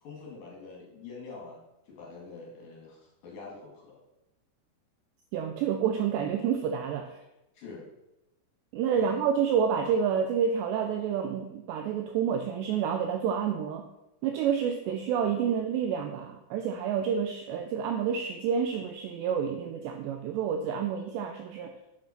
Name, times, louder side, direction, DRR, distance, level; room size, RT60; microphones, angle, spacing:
voice 1, 0.0-4.0 7.5-7.8 9.0-9.2, left 4 dB, 55° left, -4 dB, 3.2 m, -45 dB
voice 2, 5.3-7.2 8.7-13.9 14.2-21.8, right 7 dB, 85° right, 5 dB, 2.5 m, -29 dB
8.1 x 5.9 x 5.8 m, 0.93 s
omnidirectional pair, 5.6 m